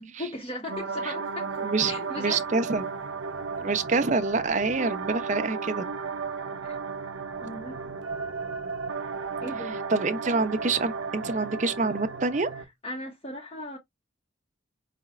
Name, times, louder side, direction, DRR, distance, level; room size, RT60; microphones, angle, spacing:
voice 1, 0.0-1.6 1.8-2.4 6.6-6.8 7.4-8.0 9.4-9.8 12.6-13.8, left 1 dB, 30° left, 0.9 m, -37 dB
sound 1, 0.7-12.6, right 5 dB, 80° right, 0.6 m, -34 dB
voice 2, 2.2-2.9 3.6-5.8 9.9-12.5, right 3 dB, 40° right, 0.5 m, -26 dB
4.9 x 2.4 x 3.0 m
head